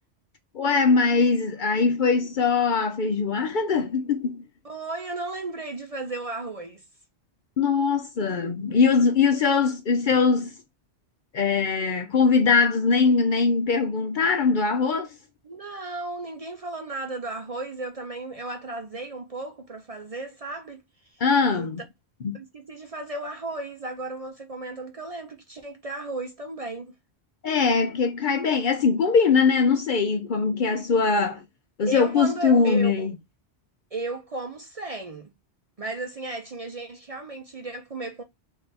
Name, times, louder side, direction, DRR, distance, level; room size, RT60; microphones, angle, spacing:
voice 1, 0.5-4.4 7.6-10.5 11.3-15.1 21.2-21.8 22.2-22.4 27.4-31.4 31.8-33.2, left 5 dB, 55° left, 0.6 m, -21 dB
voice 2, 4.6-6.8 15.4-20.8 21.1-21.2 21.5-21.7 22.3-26.9 31.9-33.1 33.9-35.3 35.8-38.2, right 2 dB, 40° right, 0.6 m, -34 dB
3.3 x 2.7 x 3.9 m
omnidirectional pair, 1.1 m